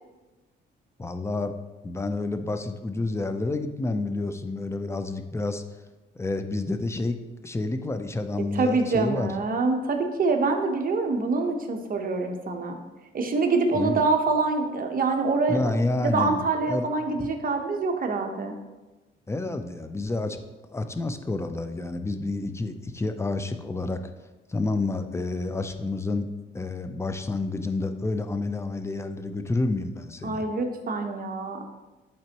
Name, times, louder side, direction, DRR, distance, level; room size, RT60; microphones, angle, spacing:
voice 1, 1.0-1.5 1.8-5.6 6.2-7.2 7.4-9.3 13.7-14.0 15.5-16.9 17.2-17.3 19.3-20.4 20.7-24.0 24.5-26.3 26.5-30.4, left 2 dB, 15° left, 8 dB, 0.6 m, -29 dB
voice 2, 8.5-12.8 13.1-15.6 16.0-18.6 30.2-31.6, right 3 dB, 45° right, 4 dB, 1.1 m, -25 dB
10.5 x 4.3 x 3.0 m, 1.1 s
cardioid pair, 90°, 20 cm